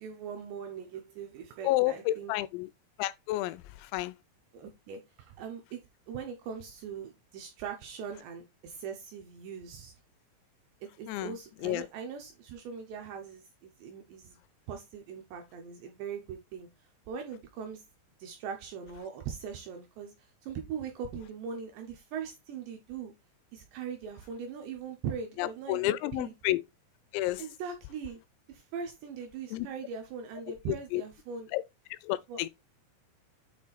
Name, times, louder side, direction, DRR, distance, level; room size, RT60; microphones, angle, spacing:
voice 1, 0.0-2.3 4.5-5.8 6.1-9.9 10.8-14.4 14.7-16.7 17.1-17.8 18.2-23.1 23.5-26.3 27.4-28.2 28.5-31.5 32.3-32.4, right 6 dB, 75° right, 2.6 m, -41 dB
voice 2, 1.6-2.7 3.0-4.1 11.1-11.9 25.4-26.6 27.1-27.4 29.5-29.7 30.9-31.0 31.5-31.6 31.9-32.5, left 16 dB, 85° left, 3.2 m, -31 dB
8.7 x 3.3 x 4.1 m
omnidirectional pair, 6.0 m